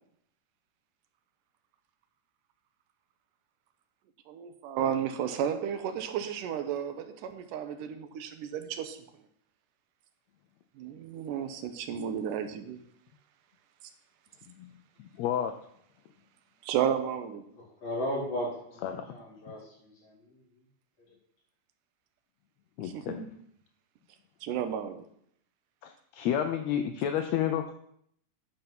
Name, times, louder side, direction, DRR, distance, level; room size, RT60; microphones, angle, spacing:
voice 1, 4.3-9.0 10.8-12.8 16.6-17.5 22.8-23.3 24.4-25.0, right 8 dB, 85° right, 8 dB, 2.4 m, -33 dB
voice 2, 15.2-15.5 18.8-19.1 22.8-23.2 25.8-27.7, left 9 dB, 80° left, 7 dB, 1.5 m, -30 dB
voice 3, 17.8-20.2, equal, 45° left, -7 dB, 5.1 m, -35 dB
9.1 x 5.5 x 5.9 m, 0.69 s
omnidirectional pair, 3.7 m